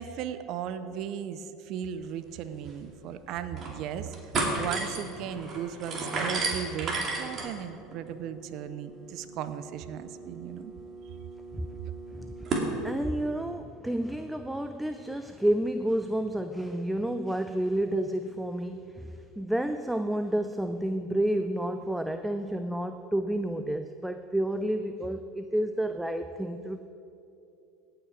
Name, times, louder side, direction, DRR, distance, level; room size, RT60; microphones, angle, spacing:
voice 1, 0.0-10.7, right 9 dB, 55° right, 11 dB, 0.6 m, -37 dB
sound 1, 2.3-2.4 2.7-2.8 3.3-3.8 4.1-12.7, right 3 dB, 40° right, 2.5 m, -34 dB
voice 2, 12.8-26.9, right 1 dB, 5° right, 8 dB, 0.4 m, -30 dB
17.5 x 6.0 x 4.9 m, 2.7 s
hypercardioid pair, 85°, 0 cm